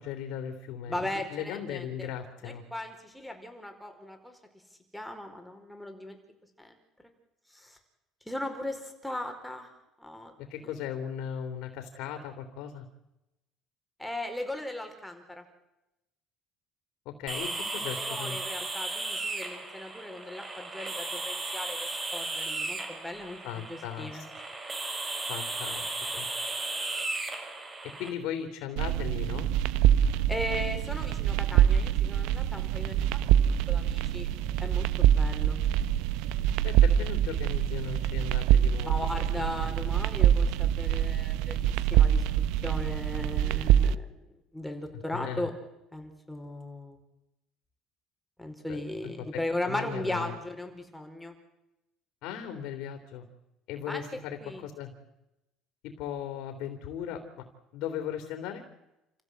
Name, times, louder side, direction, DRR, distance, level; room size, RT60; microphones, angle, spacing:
voice 1, 0.0-2.6 10.5-12.8 17.0-18.4 23.4-24.2 25.3-25.8 26.1-26.3 28.0-29.5 36.6-38.9 39.4-39.7 45.1-45.5 48.7-49.3 49.6-50.3 52.2-53.2 53.7-54.9 55.8-57.4 57.7-58.6, left 9 dB, 70° left, 6 dB, 3.4 m, -37 dB
voice 2, 0.9-2.1 2.4-4.4 4.9-6.2 6.6-6.8 7.5-7.8 8.2-9.7 10.0-10.3 10.6-10.7 14.0-15.4 17.7-24.2 30.3-34.3 34.6-35.6 38.8-42.2 42.6-44.2 44.5-45.5 45.9-47.0 48.4-51.3 53.9-54.0 54.4-54.6, left 1 dB, 5° left, 4 dB, 4.9 m, -37 dB
sound 1, 17.3-28.1, right 2 dB, 20° right, 5.3 m, -35 dB
sound 2, 28.8-43.9, right 10 dB, 80° right, 0.8 m, -25 dB
28.5 x 15.5 x 8.0 m, 0.93 s
cardioid pair, 115°, 0 cm